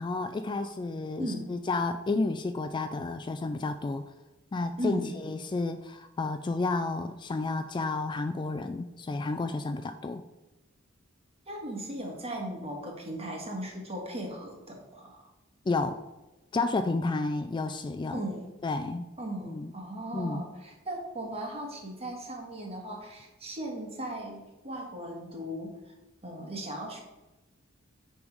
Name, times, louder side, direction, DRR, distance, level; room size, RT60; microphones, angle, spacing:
voice 1, 0.0-4.0 4.5-10.2 15.7-16.0 16.5-18.2 18.6-19.1 19.5-19.7 20.1-20.4, left 3 dB, 25° left, 8 dB, 0.3 m, -31 dB
voice 2, 1.2-1.5 4.8-5.3 11.5-15.3 18.1-18.5 19.2-25.9 26.2-27.0, right 1 dB, 30° right, 1 dB, 1.6 m, -37 dB
10.0 x 3.6 x 4.7 m, 1.1 s
head